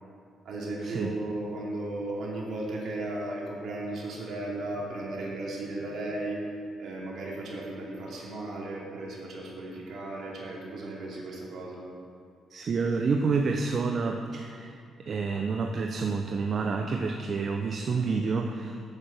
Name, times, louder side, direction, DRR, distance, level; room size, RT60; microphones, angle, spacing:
voice 1, 0.4-6.4 6.8-11.8, right 2 dB, 70° right, -4 dB, 2.7 m, -35 dB
voice 2, 12.5-18.9, right 4 dB, 50° right, 4 dB, 0.6 m, -29 dB
9.1 x 7.2 x 5.9 m, 2.3 s
cardioid pair, 90°, 0 cm